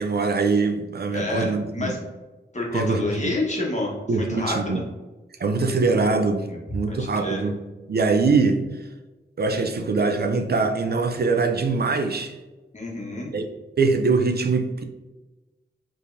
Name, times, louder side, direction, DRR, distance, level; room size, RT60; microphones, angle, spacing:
voice 1, 0.0-1.9 2.7-3.3 4.1-4.8 5.4-7.6 7.9-8.6 9.4-12.3 13.3-13.5 13.8-14.8, right 4 dB, 55° right, 0.5 m, -23 dB
voice 2, 1.1-2.0 2.5-4.8 6.5-6.6 6.9-7.5 12.7-13.3, left 2 dB, 35° left, 1.3 m, -28 dB
5.3 x 3.3 x 2.6 m
wide cardioid pair, 95°, 20 cm